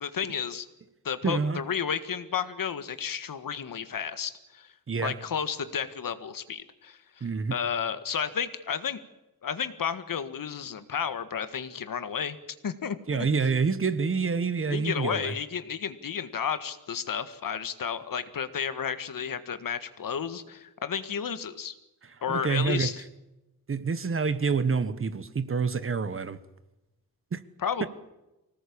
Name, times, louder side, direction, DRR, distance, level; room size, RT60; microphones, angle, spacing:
voice 1, 0.0-0.7 1.0-4.7 5.0-7.2 7.5-9.0 9.4-12.4 12.6-13.3 14.7-21.7 22.2-23.0 27.6-27.9, left 7 dB, 70° left, 1.7 m, -32 dB
voice 2, 1.2-1.6 4.9-5.1 7.2-7.6 13.1-15.3 22.0-22.9 23.7-26.4 27.3-27.4 27.8-27.9, right 5 dB, 35° right, 1.2 m, -27 dB
25.5 x 18.5 x 8.7 m
wide cardioid pair, 180°, 35 cm